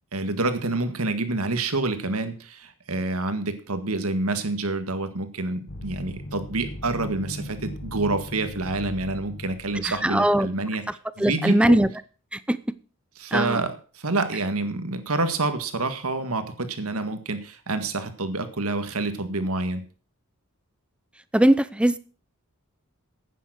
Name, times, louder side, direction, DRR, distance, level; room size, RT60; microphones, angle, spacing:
voice 1, 0.1-10.8 11.2-11.9 13.2-19.8, right 2 dB, 80° right, 9 dB, 1.9 m, -28 dB
sound 1, 5.7-10.2, left 1 dB, 60° left, 1.2 m, -38 dB
voice 2, 9.8-10.5 11.2-11.9 12.3-12.6 13.3-13.6 21.3-22.0, right 1 dB, 5° right, 16 dB, 0.6 m, -20 dB
10.5 x 9.2 x 6.5 m, 0.39 s
head